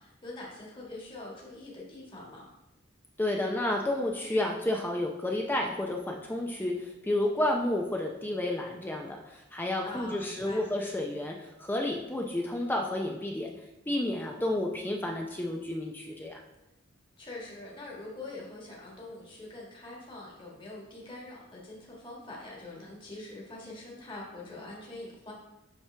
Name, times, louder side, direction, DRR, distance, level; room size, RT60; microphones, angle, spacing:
voice 1, 0.0-2.5 9.8-10.6 17.2-25.3, left 2 dB, 25° left, -4 dB, 1.5 m, -44 dB
voice 2, 3.2-13.5 13.9-16.4, left 1 dB, 10° left, 1 dB, 0.5 m, -31 dB
7.3 x 6.0 x 3.3 m, 0.94 s
head